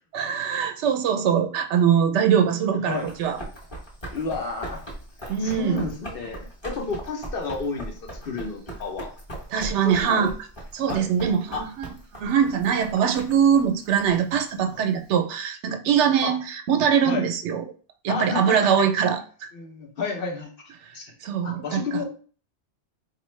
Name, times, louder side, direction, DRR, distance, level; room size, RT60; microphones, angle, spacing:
voice 1, 0.1-3.4 5.3-5.8 9.5-10.3 10.7-17.6 18.0-19.5 21.2-21.8, right 8 dB, 75° right, 7 dB, 0.9 m, -22 dB
Run, 2.9-15.1, right 1 dB, 25° left, 0.9 m, -40 dB
voice 2, 4.1-4.9 5.4-9.1 9.8-10.3 10.9-11.0 11.5-11.6 14.6-14.8 16.2-16.4 17.0-17.3 18.1-18.9 19.5-20.5 20.9-21.1 21.4-22.1, left 4 dB, 55° left, 3 dB, 0.8 m, -31 dB
4.2 x 2.5 x 3.1 m, 0.41 s
omnidirectional pair, 1.2 m